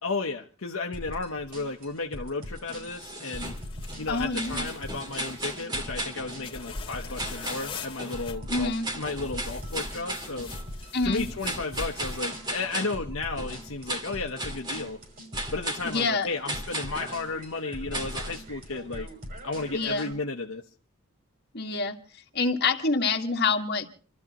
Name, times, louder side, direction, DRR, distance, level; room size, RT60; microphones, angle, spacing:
voice 1, 0.0-3.5 4.0-10.5 11.0-15.0 15.5-19.1 19.4-20.6, left 3 dB, 70° left, 1.0 m, -33 dB
sound 1, 0.9-20.1, equal, 40° right, 6.0 m, -42 dB
sound 2, 2.6-4.0 4.3-6.5 7.2-7.7 8.0-10.7 11.4-13.0 13.4-14.9 15.3-16.1 16.5-17.2 17.9-18.4, right 1 dB, 20° right, 2.0 m, -36 dB
sound 3, 3.3-5.6 6.4-8.3 9.0-12.3, left 3 dB, 25° left, 2.0 m, -41 dB
voice 2, 4.1-4.7 8.5-8.9 10.9-11.3 15.8-16.3 19.7-20.1 21.5-22.0 22.3-23.9, left 3 dB, 50° left, 1.8 m, -26 dB
28.5 x 13.0 x 3.0 m
head